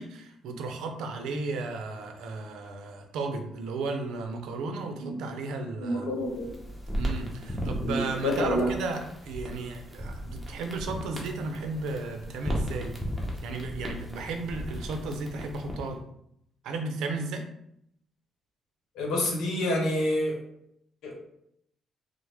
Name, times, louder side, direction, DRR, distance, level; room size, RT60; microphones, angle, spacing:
voice 1, 0.0-6.1 7.0-13.0 13.4-16.0 16.6-17.4, right 3 dB, 85° right, 4 dB, 0.5 m, -34 dB
voice 2, 5.8-6.5 7.8-8.7 19.0-20.3 21.0-21.1, left 1 dB, 80° left, 0 dB, 0.9 m, -27 dB
sound 1, 6.1-15.9, equal, ahead, 0.8 m, -36 dB
3.4 x 2.0 x 3.3 m, 0.75 s
cardioid pair, 90°, 0 cm